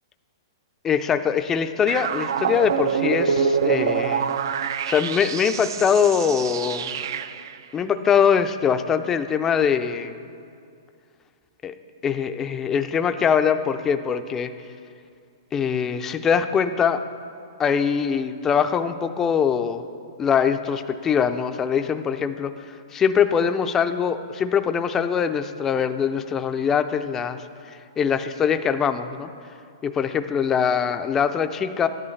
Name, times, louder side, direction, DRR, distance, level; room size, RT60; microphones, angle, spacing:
voice 1, 0.8-4.3 4.9-6.9 7.7-10.2 11.6-11.7 12.0-14.5 15.5-17.0 17.6-19.8 20.2-22.6 22.9-29.3 29.8-31.9, left 7 dB, 15° left, 9 dB, 0.4 m, -22 dB
sound 1, 1.9-7.6, right 6 dB, 70° right, 0.4 m, -26 dB
13.0 x 11.0 x 3.2 m, 2.4 s
hypercardioid pair, 150°, 2 cm